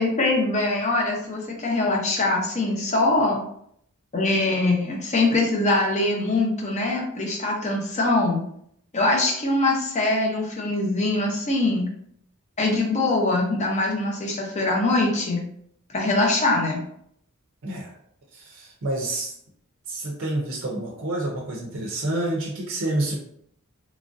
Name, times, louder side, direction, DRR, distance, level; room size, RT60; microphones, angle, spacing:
voice 1, 0.0-3.4 4.1-8.4 8.9-11.9 12.6-15.4 15.9-16.8, left 2 dB, 30° left, -1 dB, 0.6 m, -23 dB
voice 2, 17.6-17.9 18.3-19.3 19.9-23.2, right 1 dB, 55° right, -1 dB, 0.5 m, -28 dB
3.0 x 2.4 x 2.5 m, 0.69 s
head